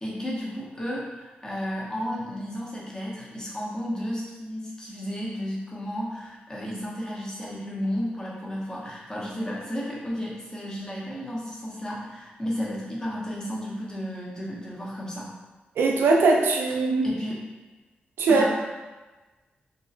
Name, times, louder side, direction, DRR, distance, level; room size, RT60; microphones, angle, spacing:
voice 1, 0.0-15.3 17.0-17.4 18.3-18.5, equal, 20° left, -5 dB, 0.8 m, -33 dB
voice 2, 15.8-17.1 18.2-18.4, right 3 dB, 90° right, 0 dB, 0.3 m, -20 dB
2.8 x 2.1 x 2.4 m, 1.2 s
cardioid pair, 65°, 4 cm